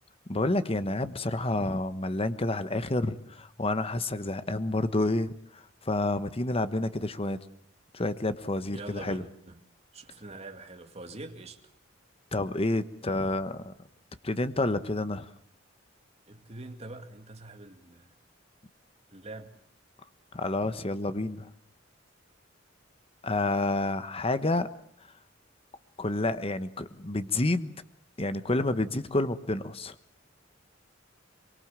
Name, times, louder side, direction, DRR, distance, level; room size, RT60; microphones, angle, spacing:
voice 1, 0.3-7.4 7.9-9.2 12.3-13.7 14.2-15.3 20.3-21.5 23.2-24.7 26.0-27.7 28.2-29.9, left 2 dB, 30° left, 1.1 m, -29 dB
voice 2, 8.7-9.6 9.9-11.6 16.3-18.1 19.1-19.5, right 2 dB, 35° right, 2.4 m, -44 dB
24.0 x 23.5 x 7.5 m
head